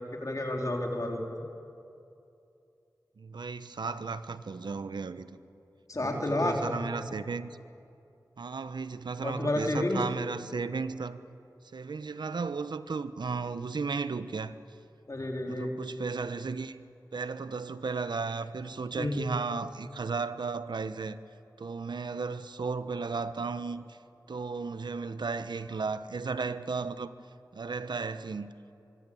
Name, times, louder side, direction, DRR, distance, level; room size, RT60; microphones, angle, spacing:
voice 1, 0.0-1.4 5.9-6.8 9.2-10.0 15.1-15.7 19.0-19.3, left 1 dB, 50° left, 3.6 m, -31 dB
voice 2, 3.2-5.4 6.0-7.5 8.4-11.2 11.7-14.5 15.5-16.8 17.1-21.2 21.6-24.0 24.3-27.1 27.5-28.5, right 4 dB, 85° right, 1.0 m, -34 dB
24.5 x 23.5 x 8.6 m
wide cardioid pair, 55°, 7 cm